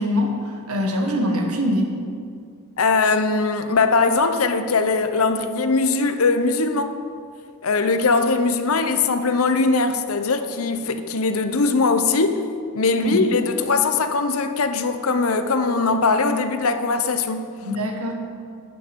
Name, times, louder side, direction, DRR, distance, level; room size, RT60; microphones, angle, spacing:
voice 1, 0.0-2.0 13.0-13.2 17.6-18.1, left 1 dB, 80° right, 2 dB, 1.5 m, -23 dB
voice 2, 2.8-7.0 7.6-12.4 12.7-17.5, left 4 dB, 70° left, 9 dB, 0.8 m, -20 dB
11.5 x 9.3 x 5.3 m, 2.2 s
head